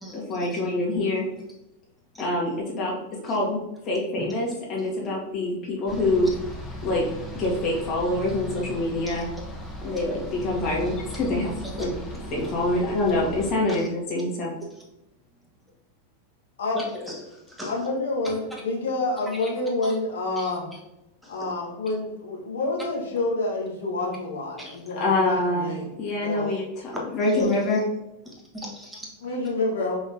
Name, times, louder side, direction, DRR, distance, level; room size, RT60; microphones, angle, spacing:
voice 1, 0.1-1.2 2.2-3.6 3.8-6.3 6.8-7.0 7.3-9.3 9.8-11.9 12.3-14.5 25.0-25.7 26.0-27.8, left 2 dB, 35° left, -4 dB, 1.7 m, -25 dB
sound 1, 5.9-13.5, equal, 15° left, 1.1 m, -37 dB
voice 2, 16.7-17.7 18.2-18.4 19.3-19.5 19.8-20.0 20.4-20.8 21.2-21.5 24.6-24.8 26.9-27.5 28.2-29.1, equal, 5° right, -3 dB, 1.3 m, -38 dB
voice 3, 17.7-20.6 21.3-26.6 27.3-27.5 29.2-30.0, left 2 dB, 60° left, -1 dB, 1.3 m, -28 dB
5.1 x 3.9 x 2.6 m, 0.91 s
figure-of-eight pair, 90°, 0 cm